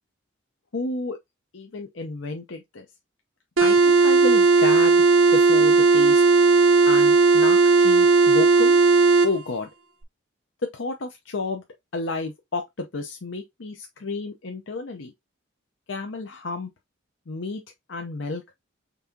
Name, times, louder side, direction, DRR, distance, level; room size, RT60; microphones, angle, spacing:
voice 1, 0.7-1.2 1.5-2.9 3.6-5.0 5.3-6.2 6.8-8.8 9.2-9.7 10.7-11.6 11.9-15.1 15.9-16.7 17.3-17.6 17.9-18.4, left 3 dB, 70° left, 0.7 m, -31 dB
sound 1, 3.6-9.3, right 4 dB, 85° right, 0.8 m, -16 dB
5.4 x 3.5 x 2.7 m
head